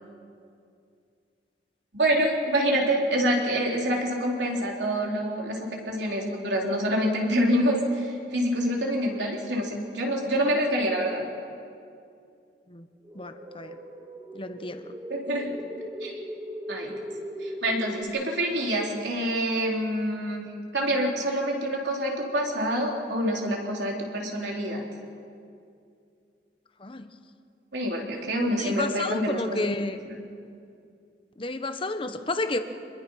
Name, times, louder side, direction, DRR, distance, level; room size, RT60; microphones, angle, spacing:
voice 1, 1.9-9.7 9.9-11.2 15.1-15.6 16.0-16.2 16.7-16.9 17.4-20.5 20.7-24.8 27.7-29.7 30.1-30.2, equal, 80° right, -1 dB, 3.8 m, -26 dB
sound 1, 13.0-18.0, equal, 25° right, 2.9 m, -39 dB
voice 2, 13.1-13.8 14.3-14.9 26.8-27.1 28.6-30.0 31.4-32.6, left 2 dB, 30° left, 8 dB, 1.1 m, -31 dB
26.5 x 21.5 x 5.7 m, 2.4 s
head